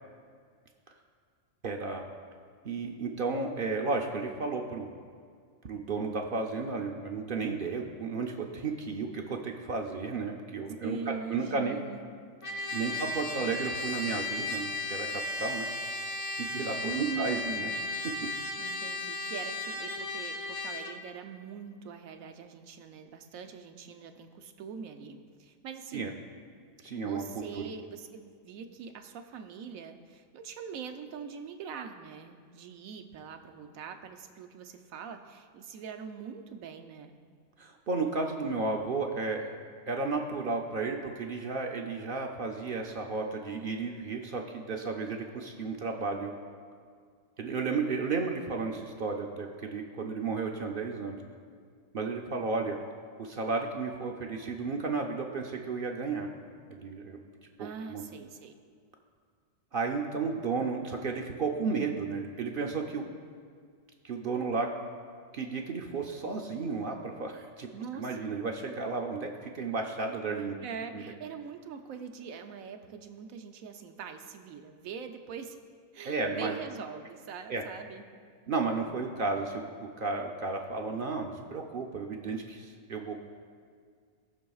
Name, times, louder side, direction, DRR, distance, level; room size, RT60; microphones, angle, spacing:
voice 1, 1.6-2.0 2.6-4.9 5.6-11.8 12.7-15.7 16.4-17.7 25.9-26.1 26.8-27.2 27.6-27.7 37.6-39.5 39.9-46.3 47.4-51.2 51.9-52.8 53.2-56.3 56.7-57.2 57.6-58.0 59.7-63.0 64.0-64.7 65.3-67.7 68.0-70.6 70.9-71.0 76.0-76.5 77.5-77.6 78.5-83.1, right 4 dB, 55° right, 2 dB, 0.6 m, -33 dB
voice 2, 10.8-12.0 12.9-13.5 16.8-17.9 18.6-26.2 26.9-37.1 57.6-58.6 67.7-68.1 70.6-75.6 75.9-78.1, right 6 dB, 90° right, 6 dB, 1.1 m, -42 dB
Trumpet, 12.4-21.0, left 2 dB, 40° left, 0.4 m, -35 dB
19.0 x 6.3 x 2.3 m, 2.1 s
omnidirectional pair, 1.4 m